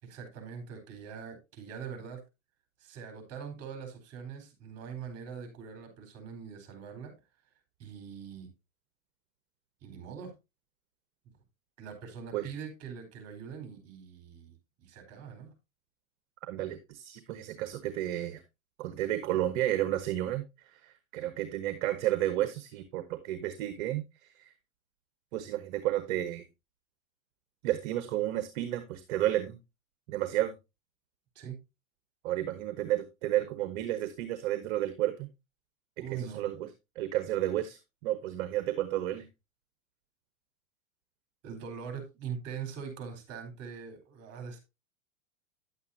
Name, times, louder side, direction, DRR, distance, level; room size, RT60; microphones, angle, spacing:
voice 1, 0.0-2.2 2.8-7.1 7.8-8.5 9.8-10.3 11.8-14.5 14.8-15.5 31.3-31.6 36.0-36.5 41.4-44.6, right 7 dB, 40° right, 4.2 m, -42 dB
voice 2, 16.5-18.4 18.8-24.5 25.3-26.4 27.6-29.6 30.1-30.5 32.2-35.3 36.2-36.7 36.9-39.3, right 13 dB, 55° right, 1.2 m, -32 dB
10.0 x 8.3 x 2.7 m
hypercardioid pair, 120°, 40 cm